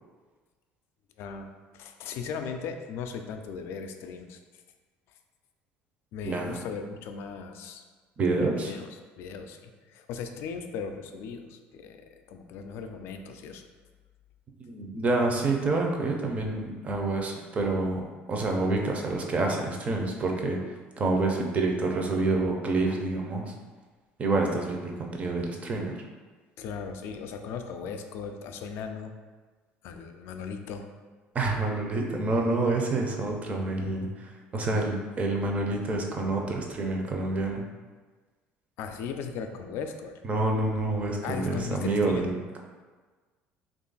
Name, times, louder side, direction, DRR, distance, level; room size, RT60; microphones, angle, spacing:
voice 1, 1.2-1.5 1.7-4.4 6.1-7.8 8.4-8.9 9.2-13.7 26.6-29.1 29.8-30.9 38.8-40.2 41.2-42.3, left 6 dB, 70° left, 6 dB, 0.3 m, -37 dB
voice 2, 6.2-6.6 8.2-8.7 14.6-23.5 24.2-26.0 31.3-37.6 40.2-42.6, right 2 dB, 30° right, 1 dB, 0.5 m, -28 dB
3.1 x 2.4 x 3.9 m, 1.4 s
cardioid pair, 115°, 4 cm